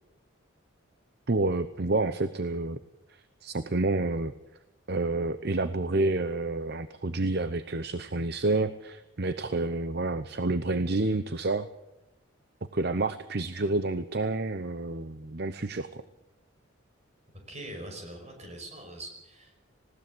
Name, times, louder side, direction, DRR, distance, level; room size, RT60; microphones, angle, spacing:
voice 1, 1.3-2.8 3.1-4.3 4.9-11.7 12.7-16.0, right 2 dB, 50° right, 12 dB, 0.8 m, -29 dB
voice 2, 17.5-19.6, right 1 dB, 30° right, 3 dB, 5.5 m, -43 dB
19.5 x 17.5 x 7.9 m, 0.90 s
head